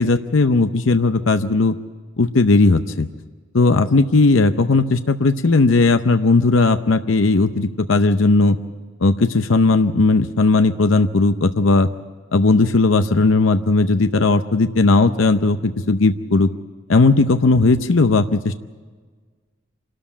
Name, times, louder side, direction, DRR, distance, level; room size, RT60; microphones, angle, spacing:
voice 1, 0.0-1.8 2.2-3.1 3.5-8.6 9.0-11.9 12.3-16.5 16.9-18.6, left 3 dB, 80° left, 9 dB, 0.7 m, -16 dB
26.0 x 13.0 x 8.6 m, 1.5 s
head